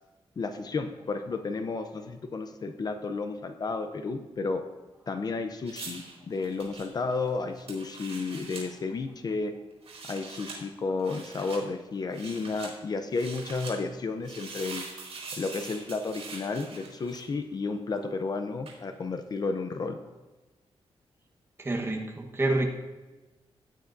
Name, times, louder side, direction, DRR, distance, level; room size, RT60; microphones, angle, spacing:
voice 1, 0.4-4.6 5.1-9.5 10.1-14.8 15.3-20.0, left 4 dB, 40° left, 7 dB, 0.6 m, -32 dB
sound 1, 5.7-8.7 9.7-10.6 11.0-11.6 12.1-12.7 13.1-13.8 14.2-17.4 18.7-18.8, right 4 dB, 80° right, 4.0 m, -43 dB
voice 2, 21.6-22.7, right 2 dB, 25° right, 1 dB, 1.2 m, -28 dB
16.5 x 9.1 x 2.6 m, 1.2 s
wide cardioid pair, 175°, 10 cm